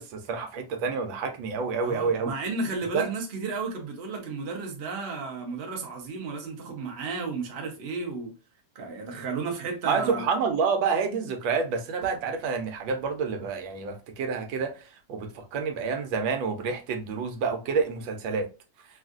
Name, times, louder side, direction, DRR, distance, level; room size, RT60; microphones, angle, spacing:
voice 1, 0.0-2.3 2.9-3.1 9.9-18.5, right 5 dB, 85° right, 1.4 m, -28 dB
voice 2, 1.8-8.3 8.7-10.3, right 4 dB, 55° right, 0.6 m, -33 dB
3.5 x 2.4 x 2.3 m
omnidirectional pair, 2.1 m